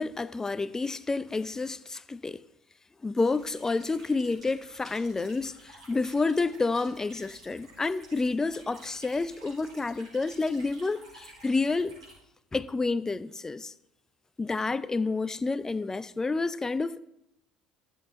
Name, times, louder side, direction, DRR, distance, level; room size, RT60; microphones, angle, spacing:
voice 1, 0.0-2.4 3.0-11.9 12.5-13.7 14.4-17.0, left 3 dB, 20° left, 0.5 m, -29 dB
sound 1, 3.2-12.1, right 2 dB, 90° right, 4.8 m, -53 dB
13.5 x 7.7 x 3.7 m
figure-of-eight pair, 60°, 3 cm